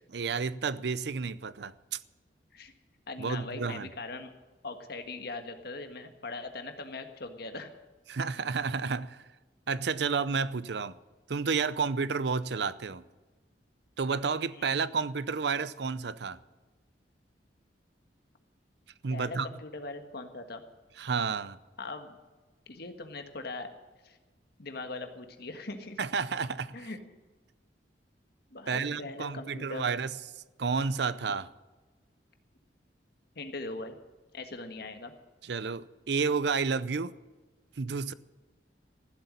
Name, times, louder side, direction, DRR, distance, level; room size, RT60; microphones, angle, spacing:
voice 1, 0.1-1.7 3.2-3.9 8.1-9.2 9.7-10.9 11.3-13.0 14.0-16.4 19.0-19.5 21.0-21.6 26.0-26.8 28.7-30.1 30.6-31.5 35.5-37.1 37.8-38.1, right 5 dB, 65° right, 0.6 m, -31 dB
voice 2, 3.1-4.3 4.6-7.7 14.5-14.7 19.1-20.6 21.8-22.2 22.7-23.7 24.0-24.2 24.6-26.0 26.7-27.0 28.5-29.9 33.3-34.0 34.3-35.1, left 3 dB, 60° left, 1.6 m, -40 dB
15.0 x 8.1 x 9.8 m
head